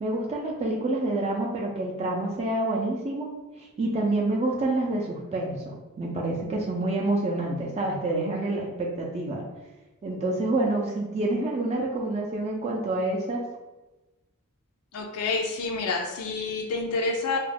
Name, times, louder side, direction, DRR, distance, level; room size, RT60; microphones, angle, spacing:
voice 1, 0.0-3.3 3.6-9.4 10.0-13.4, right 2 dB, 30° right, -2 dB, 0.3 m, -27 dB
voice 2, 14.9-17.4, left 3 dB, 85° left, 2 dB, 0.4 m, -28 dB
2.3 x 2.1 x 3.2 m, 1.1 s
head